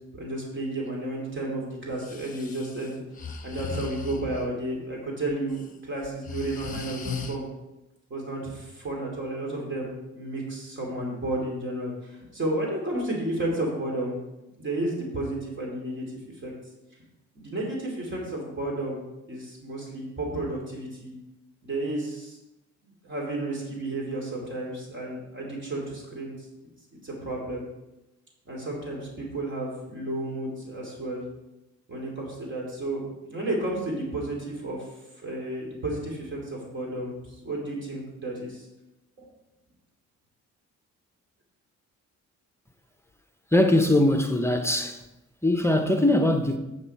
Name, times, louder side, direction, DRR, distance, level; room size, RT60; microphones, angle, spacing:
voice 1, 0.1-3.0 3.4-7.4 8.1-14.2 14.6-16.5 17.3-19.0 19.3-21.1 21.6-22.4 23.0-26.5 27.0-27.6 28.5-31.2 31.9-34.9 35.2-38.7 39.2-39.3, right 1 dB, 40° right, 3.0 m, -32 dB
Breathing, 1.9-4.5 5.3-5.7 6.0-7.4, left 5 dB, 25° left, 1.2 m, -37 dB
voice 2, 43.5-45.0 45.4-46.6, left 1 dB, 10° left, 0.9 m, -21 dB
8.7 x 7.2 x 4.4 m
cardioid pair, 90°, 30 cm